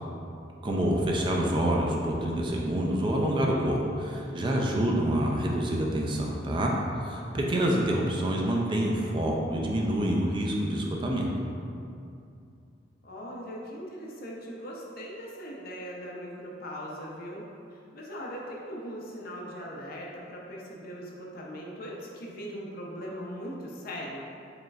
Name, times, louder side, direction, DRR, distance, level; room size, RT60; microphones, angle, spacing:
voice 1, 0.6-11.3, right 1 dB, 25° right, -1 dB, 0.4 m, -27 dB
voice 2, 13.0-24.3, equal, 55° left, -3 dB, 0.6 m, -40 dB
4.9 x 3.1 x 2.4 m, 2.6 s
head